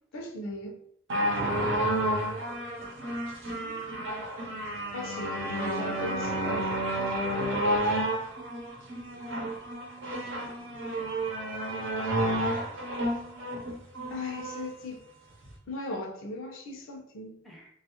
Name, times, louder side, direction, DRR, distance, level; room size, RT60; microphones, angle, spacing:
voice 1, 0.1-0.8 4.9-6.8 14.1-15.0 15.7-17.3, left 2 dB, 75° left, 0.6 m, -37 dB
sound 1, 1.1-14.7 15.4-15.5, right 1 dB, 65° right, 0.7 m, -30 dB
voice 2, 3.5-3.8 4.9-5.0 9.4-9.6 10.0-10.3 10.8-10.9 13.5-13.8 17.4-17.7, equal, ahead, 0.5 m, -53 dB
2.6 x 2.3 x 2.8 m
head